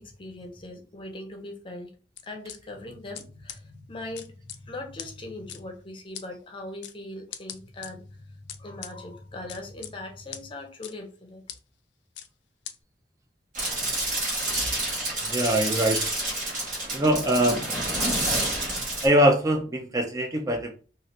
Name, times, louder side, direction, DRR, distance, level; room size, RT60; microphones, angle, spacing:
voice 1, 0.0-1.9 2.3-11.4, left 2 dB, 30° left, 3 dB, 0.6 m, -40 dB
sound 1, 2.2-2.6 3.1-3.2 3.5-3.6 4.2-4.6 5.0-5.1 5.5-5.6 6.1-6.3 6.8-6.9 7.3-7.9 8.5-8.9 9.5-9.9 10.3-10.4 10.8-10.9 11.5-11.6 12.2-12.3 12.7-12.8, left 10 dB, 75° left, 0.4 m, -39 dB
sound 2, 13.5-19.1, right 1 dB, 50° right, 1.5 m, -28 dB
voice 2, 15.2-16.1 16.9-17.6 19.0-20.7, right 1 dB, 20° right, 3 dB, 0.4 m, -23 dB
3.1 x 2.4 x 2.7 m, 0.36 s
head